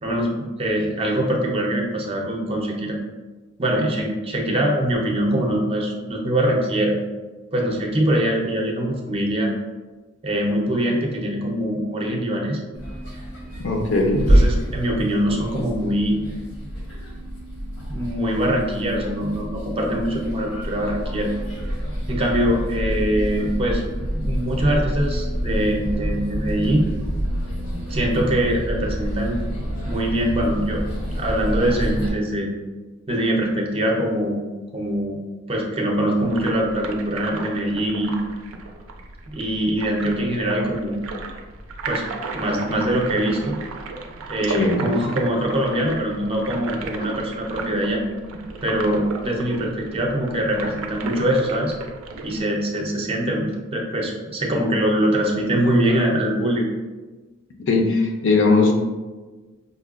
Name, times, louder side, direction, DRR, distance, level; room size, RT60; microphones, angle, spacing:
voice 1, 0.0-3.0 3.6-7.0 7.5-9.5 10.2-12.6 14.2-16.2 17.9-21.3 22.1-23.8 24.1-26.9 27.9-29.4 29.8-30.8 31.1-32.5 33.1-34.4 34.7-35.2 35.5-38.1 39.3-41.0 41.9-42.1 42.3-43.6 44.3-48.0 48.6-51.7 52.2-56.7, right 1 dB, 30° right, 0 dB, 0.5 m, -23 dB
sound 1, 12.7-32.1, equal, 80° left, 1.0 m, -27 dB
voice 2, 13.6-14.2 44.6-44.8 57.7-58.7, left 3 dB, 60° left, 2 dB, 0.5 m, -19 dB
sound 2, 36.2-52.4, right 3 dB, 90° right, 0.4 m, -34 dB
5.2 x 2.2 x 2.4 m, 1.3 s
head